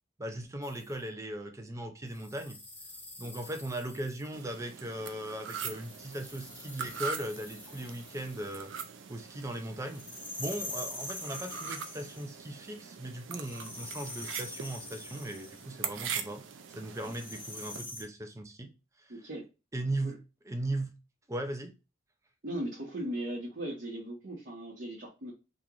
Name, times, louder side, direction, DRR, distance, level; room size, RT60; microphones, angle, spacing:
voice 1, 0.2-2.6 3.2-8.7 9.1-10.0 10.4-16.4 16.7-18.7 19.7-20.1 20.5-20.9 21.3-21.7, right 1 dB, 15° right, 0.5 m, -38 dB
sound 1, 0.6-0.9 2.1-4.4 5.5-8.7 9.9-12.3 13.3-15.7 16.9-18.0, left 2 dB, 10° left, 1.6 m, -45 dB
sound 2, 4.3-17.8, right 7 dB, 70° right, 0.5 m, -42 dB
voice 2, 19.1-19.4 20.0-20.2 22.4-25.3, right 1 dB, 50° right, 1.1 m, -38 dB
2.9 x 2.5 x 3.7 m
head